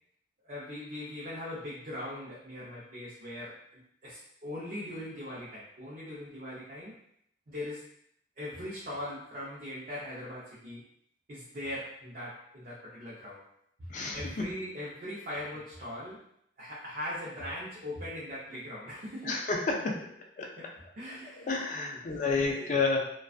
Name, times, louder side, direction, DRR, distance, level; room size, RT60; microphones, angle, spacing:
voice 1, 0.4-7.0 7.5-7.8 8.4-10.9 11.3-13.4 13.8-16.2 16.6-19.4 20.4-22.7, left 1 dB, 45° right, -8 dB, 0.5 m, -40 dB
voice 2, 13.9-14.5 19.2-20.1 20.4-20.7 21.5-23.1, left 3 dB, 40° left, 1 dB, 0.3 m, -30 dB
2.4 x 2.2 x 2.4 m, 0.73 s
head